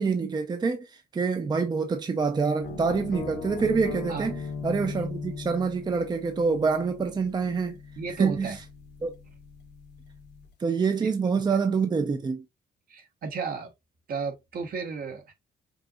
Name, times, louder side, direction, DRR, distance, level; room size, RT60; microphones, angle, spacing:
voice 1, 0.0-7.8 8.2-8.5 9.0-9.1 10.6-12.4, right 5 dB, 25° right, 0.5 m, -26 dB
sound 1, 2.6-10.5, left 5 dB, 80° left, 1.3 m, -39 dB
voice 2, 8.0-8.6 11.0-11.1 11.5-11.6 12.9-13.7 14.1-15.3, right 5 dB, 60° right, 1.2 m, -34 dB
5.4 x 2.8 x 2.4 m
cardioid pair, 130°, 17 cm